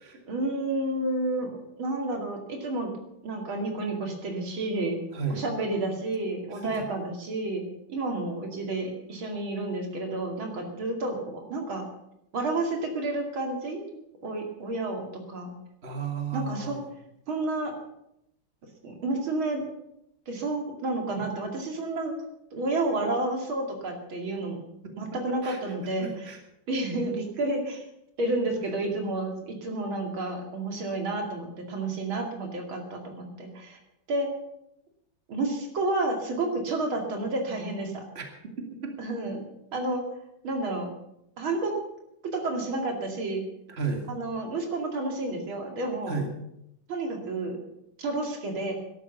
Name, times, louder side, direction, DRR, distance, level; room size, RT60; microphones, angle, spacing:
voice 1, 0.3-2.9 3.2-5.0 5.3-7.6 7.9-11.8 12.3-13.8 14.2-15.5 16.3-16.8 17.3-17.7 18.8-19.6 20.3-22.1 22.5-24.6 25.0-26.1 26.7-27.8 28.2-33.8 34.1-34.3 35.3-38.0 39.0-39.4 39.7-40.0 40.4-40.9 41.4-41.7 42.3-43.4 44.1-46.2 46.9-47.6 48.0-48.7, right 2 dB, 90° right, 3 dB, 3.3 m, -30 dB
voice 2, 5.1-5.4 6.6-6.9 15.8-16.9 21.2-21.3 25.3-25.6 26.0-26.4 38.1-38.3 43.7-44.0 46.1-46.3, right 5 dB, 30° right, 3 dB, 2.4 m, -33 dB
13.5 x 11.5 x 6.9 m, 0.80 s
omnidirectional pair, 2.2 m